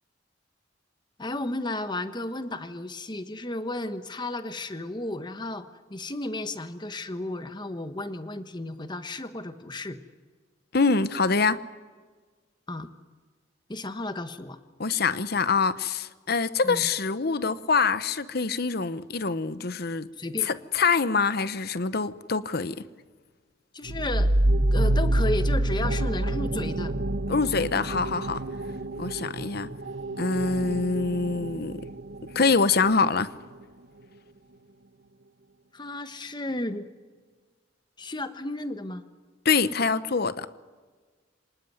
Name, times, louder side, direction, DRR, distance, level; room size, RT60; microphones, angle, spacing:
voice 1, 1.2-10.0 12.7-12.9 13.7-14.6 16.6-16.8 20.2-20.5 23.7-24.3 24.7-27.0 35.7-36.9 38.0-39.0, left 1 dB, 25° left, 1.2 m, -33 dB
voice 2, 10.7-11.6 14.8-20.1 20.4-22.8 27.3-28.4 29.0-29.7 30.2-31.8 32.3-33.3 39.4-40.5, left 4 dB, 55° left, 1.0 m, -25 dB
sound 1, 23.8-33.2, right 1 dB, 75° right, 1.1 m, -27 dB
25.5 x 19.5 x 9.5 m
head